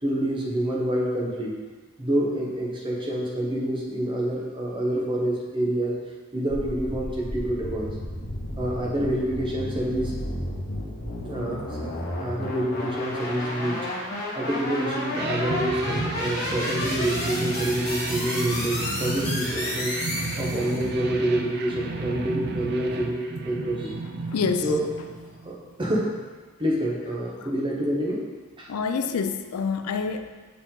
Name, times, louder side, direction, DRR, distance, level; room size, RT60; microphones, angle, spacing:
voice 1, 0.0-1.6 2.0-6.0 6.3-7.9 8.6-10.2 11.2-11.9 12.2-13.8 14.3-24.0 24.6-24.8 25.4-26.1 26.6-28.2 28.6-28.7, right 1 dB, 20° right, -3 dB, 0.9 m, -27 dB
sound 1, 6.5-20.9, left 1 dB, 45° left, 1.5 m, -32 dB
sound 2, 15.1-25.7, right 3 dB, 50° right, 0.5 m, -33 dB
voice 2, 24.3-24.7 28.7-30.3, left 5 dB, 80° left, 8 dB, 0.4 m, -27 dB
5.9 x 4.6 x 3.8 m, 1.4 s
head